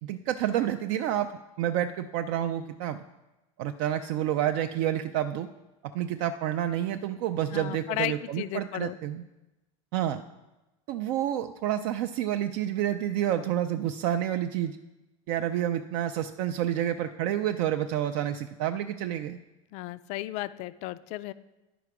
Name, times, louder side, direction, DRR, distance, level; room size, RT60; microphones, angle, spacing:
voice 1, 0.0-1.3 1.6-3.0 3.6-5.5 5.8-9.2 9.9-10.2 10.9-14.8 15.3-19.4, right 11 dB, 60° right, 8 dB, 0.4 m, -29 dB
voice 2, 7.5-9.0 19.7-21.3, left 16 dB, 45° left, 15 dB, 0.4 m, -34 dB
11.0 x 5.0 x 4.7 m, 1.0 s
supercardioid pair, 145°, 16 cm